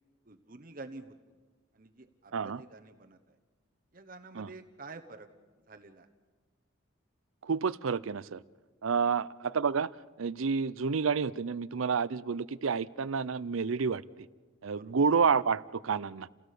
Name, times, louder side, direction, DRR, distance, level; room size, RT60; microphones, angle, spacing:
voice 1, 0.2-1.2 1.7-3.4 3.9-5.3 5.7-6.1 14.7-15.1, right 3 dB, 45° right, 6 dB, 1.1 m, -49 dB
voice 2, 7.4-8.4 8.8-9.9 10.2-14.3 14.6-16.3, right 5 dB, 85° right, 18 dB, 0.6 m, -29 dB
29.5 x 17.0 x 6.8 m, 1.4 s
head